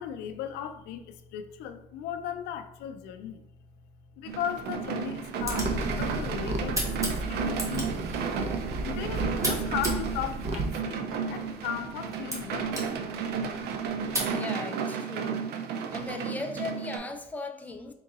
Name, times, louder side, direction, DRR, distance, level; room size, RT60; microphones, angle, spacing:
voice 1, 0.0-3.4 4.2-8.4 8.8-12.7 13.2-13.4, left 9 dB, 90° left, 9 dB, 0.4 m, -37 dB
sound 1, 4.3-17.0, right 6 dB, 70° right, 0.5 m, -33 dB
sound 2, 5.2-14.4, right 1 dB, 20° right, 1.2 m, -39 dB
sound 3, 5.4-10.7, right 2 dB, 40° right, 0.8 m, -33 dB
voice 2, 14.3-15.4 15.9-17.9, left 2 dB, 10° left, 4 dB, 0.4 m, -37 dB
3.8 x 3.6 x 2.9 m, 0.79 s
cardioid pair, 110°, 17 cm